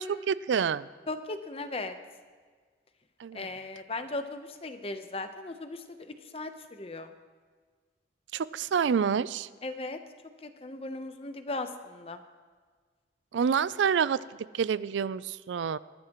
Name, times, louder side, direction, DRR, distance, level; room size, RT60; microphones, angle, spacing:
voice 1, 0.0-0.9 3.2-3.5 8.3-9.5 13.3-14.2 14.5-15.8, right 7 dB, 90° right, 18 dB, 0.4 m, -28 dB
voice 2, 1.1-1.9 3.3-7.1 9.6-10.0 10.4-12.2, left 2 dB, 35° left, 8 dB, 0.8 m, -37 dB
20.5 x 14.5 x 3.0 m, 1.5 s
head